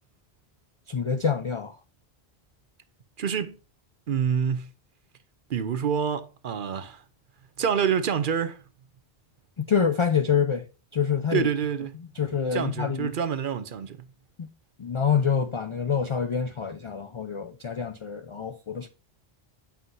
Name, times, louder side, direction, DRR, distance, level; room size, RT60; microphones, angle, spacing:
voice 1, 0.9-1.8 9.7-10.6 10.9-11.5 12.1-13.1 14.4-14.5 14.8-18.9, left 6 dB, 55° left, 0.3 m, -26 dB
voice 2, 3.2-3.6 4.1-4.7 5.5-7.0 7.6-8.6 11.3-11.9 12.5-14.1, right 7 dB, 60° right, 0.8 m, -27 dB
7.7 x 5.7 x 2.6 m
omnidirectional pair, 1.0 m